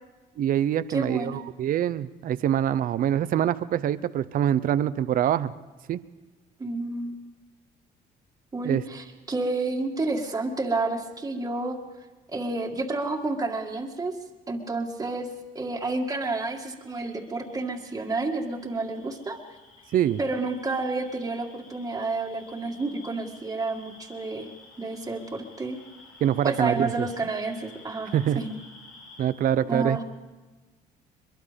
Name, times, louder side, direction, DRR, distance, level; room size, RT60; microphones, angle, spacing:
voice 1, 0.4-5.5 5.9-6.0 8.6-8.8 19.9-20.2 26.2-27.1 28.1-28.4 29.2-30.0, right 10 dB, 55° right, 15 dB, 0.7 m, -25 dB
voice 2, 0.9-1.4 6.6-7.2 8.5-11.8 12.3-14.1 14.5-15.3 15.5-19.4 20.2-24.5 24.8-25.8 26.4-28.6 29.7-30.0, right 3 dB, 20° right, -1 dB, 2.2 m, -30 dB
sound 1, 16.8-29.3, left 3 dB, 75° left, 6.1 m, -52 dB
23.0 x 22.5 x 5.3 m, 1.2 s
cardioid pair, 110°, 17 cm